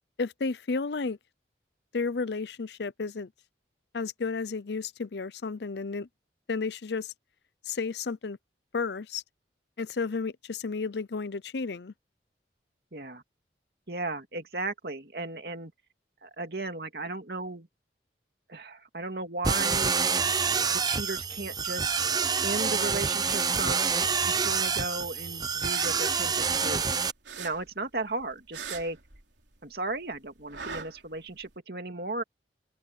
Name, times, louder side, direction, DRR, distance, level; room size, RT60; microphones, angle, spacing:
voice 1, 0.2-1.2 1.9-3.3 3.9-6.1 6.5-7.1 7.7-8.4 8.7-9.2 9.8-11.9, left 4 dB, 70° left, 0.6 m, -32 dB
voice 2, 12.9-13.2 13.9-15.7 16.2-17.7 18.5-19.9 20.7-22.0 22.4-23.9 24.2-26.8 27.4-29.0 29.6-32.2, right 2 dB, 60° right, 2.5 m, -35 dB
sound 1, 19.4-27.1, right 5 dB, 20° right, 0.7 m, -27 dB
sound 2, 25.7-26.9 27.2-29.6 29.9-31.5, right 6 dB, 85° right, 3.5 m, -42 dB
open air
head